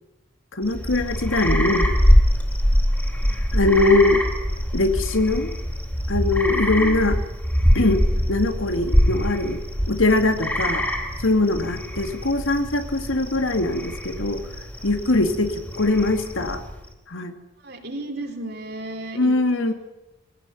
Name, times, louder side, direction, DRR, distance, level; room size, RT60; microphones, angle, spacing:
voice 1, 0.6-1.9 3.5-4.2 4.7-5.5 6.1-7.2 7.7-9.6 9.9-10.9 11.2-14.4 14.8-16.6 17.1-17.3 19.2-19.7, left 2 dB, 80° left, 8 dB, 2.5 m, -21 dB
sound 1, 0.6-16.9, equal, 10° left, 3.7 m, -23 dB
voice 2, 17.6-19.7, right 1 dB, 50° right, 3 dB, 4.5 m, -35 dB
23.0 x 17.5 x 9.3 m, 1.0 s
head